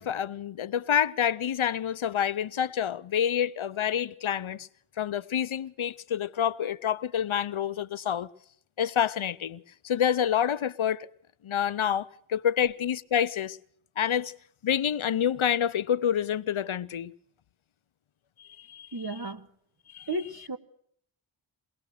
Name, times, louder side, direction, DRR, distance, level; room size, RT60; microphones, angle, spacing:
voice 1, 0.0-4.7 5.0-8.3 8.8-11.1 11.4-13.6 14.0-14.3 14.6-17.1 18.4-18.9 19.9-20.1, left 9 dB, 80° left, 0.7 m, -28 dB
voice 2, 18.9-19.5 20.1-20.6, right 2 dB, 50° right, 1.7 m, -33 dB
22.5 x 18.0 x 6.5 m
wide cardioid pair, 45°, 47 cm